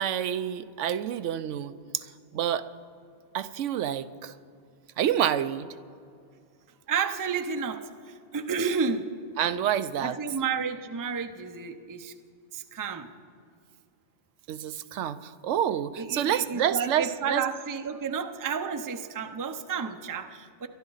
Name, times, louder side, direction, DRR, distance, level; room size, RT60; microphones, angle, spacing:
voice 1, 0.0-2.0 2.3-2.7 3.3-4.3 5.0-5.7 9.4-10.2 14.5-17.4, right 10 dB, 80° right, 13 dB, 0.9 m, -28 dB
voice 2, 6.9-9.1 10.0-12.1 12.5-13.1 16.0-20.7, right 6 dB, 25° right, 8 dB, 0.4 m, -31 dB
22.0 x 12.0 x 4.0 m, 2.3 s
omnidirectional pair, 1.2 m